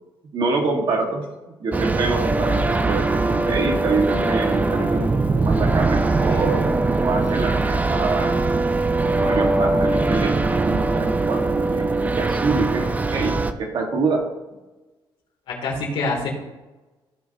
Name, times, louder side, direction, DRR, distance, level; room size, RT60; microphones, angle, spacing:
voice 1, 0.3-8.4 8.9-14.2, right 3 dB, 55° right, 1 dB, 1.8 m, -26 dB
sound 1, 1.7-13.5, right 3 dB, 15° right, 0.5 m, -21 dB
voice 2, 15.5-16.3, left 3 dB, 75° left, -1 dB, 3.0 m, -26 dB
15.5 x 5.8 x 2.9 m, 1.1 s
cardioid pair, 135°, 9 cm